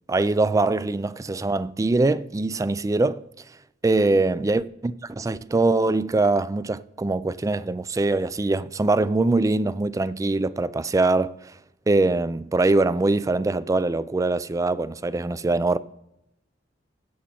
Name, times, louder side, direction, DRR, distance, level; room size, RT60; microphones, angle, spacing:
voice 1, 0.1-3.2 3.8-11.5 11.9-15.8, right 2 dB, 20° right, 0.3 m, -23 dB
16.0 x 5.4 x 4.3 m
head